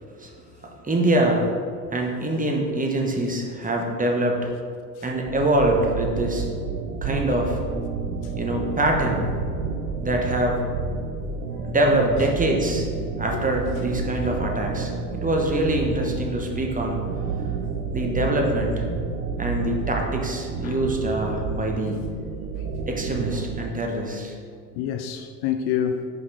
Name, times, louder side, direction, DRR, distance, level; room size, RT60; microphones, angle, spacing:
voice 1, 0.8-1.5 1.9-4.5 5.0-6.5 7.0-7.6 8.4-9.3 10.0-10.6 11.7-12.9 13.2-17.0 17.9-18.8 19.4-22.0 22.9-24.4, right 1 dB, 15° right, 1.0 m, -24 dB
sound 1, 5.3-23.7, right 5 dB, 75° right, 0.6 m, -30 dB
voice 2, 24.7-26.1, left 9 dB, 50° left, 0.5 m, -29 dB
5.4 x 5.2 x 3.9 m
hypercardioid pair, 65°, 49 cm